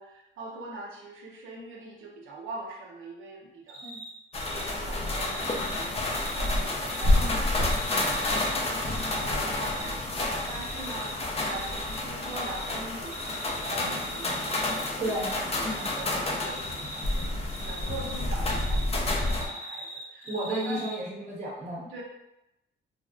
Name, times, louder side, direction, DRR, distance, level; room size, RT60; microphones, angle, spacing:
voice 1, 0.0-3.8 4.5-15.1 15.4-20.8 21.9-22.0, right 2 dB, 85° right, 0 dB, 0.7 m, -43 dB
Cricket, 3.7-4.1 4.4-4.7 5.1-7.2 7.5-9.2 9.6-9.9 10.3-11.1 11.4-12.8 13.0-15.4 15.6-16.0 16.3-18.8 19.1-20.9, right 1 dB, 10° right, 1.0 m, -41 dB
sound 1, 4.3-19.5, left 2 dB, 30° left, 0.6 m, -29 dB
voice 2, 15.0-15.3 15.6-15.9 20.2-21.9, right 1 dB, 35° right, -4 dB, 1.0 m, -33 dB
3.3 x 2.5 x 2.3 m, 0.88 s
cardioid pair, 90°, 20 cm